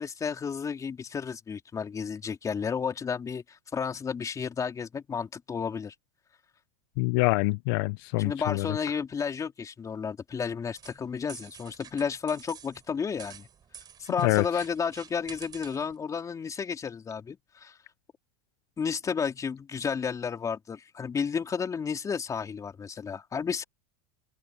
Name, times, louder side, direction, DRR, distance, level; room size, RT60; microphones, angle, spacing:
voice 1, 0.0-5.9 8.2-13.5 14.0-17.7 18.8-23.6, left 6 dB, 25° left, 3.7 m, -32 dB
voice 2, 7.0-8.8 14.2-14.7, left 24 dB, 65° left, 0.6 m, -26 dB
sound 1, 10.8-16.0, right 8 dB, 30° right, 4.0 m, -49 dB
supercardioid pair, 110°, 14 cm